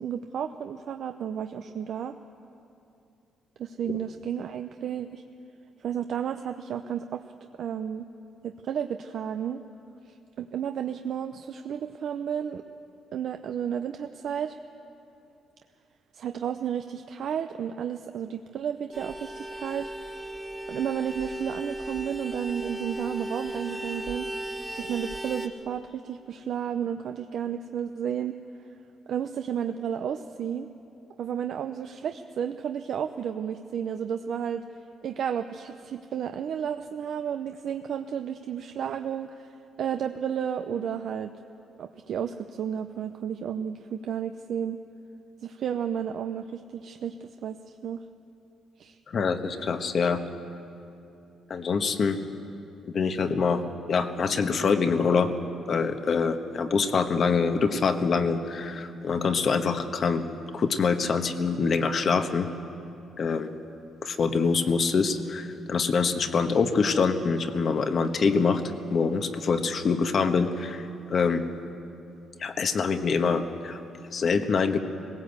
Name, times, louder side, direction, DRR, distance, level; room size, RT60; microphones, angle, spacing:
voice 1, 0.0-2.1 3.6-5.2 5.8-7.2 7.6-8.1 8.4-9.6 10.1-12.6 13.1-14.6 16.1-19.9 20.7-24.3 24.7-28.4 29.1-30.7 31.2-34.6 35.0-39.5 39.8-41.3 41.8-44.8 45.4-48.0 48.8-49.0, right 8 dB, 65° right, 7 dB, 0.6 m, -32 dB
Vehicle horn car horn honking, 18.9-25.5, right 1 dB, 10° right, 1.3 m, -36 dB
voice 2, 49.1-50.2 51.5-52.2 52.8-53.6 53.9-55.3 55.7-60.3 60.5-62.5 63.2-63.5 64.0-68.6 68.9-71.4 72.4-73.8 74.1-74.8, left 5 dB, 50° left, 7 dB, 1.3 m, -25 dB
20.0 x 17.5 x 8.1 m, 2.8 s
cardioid pair, 90°, 0 cm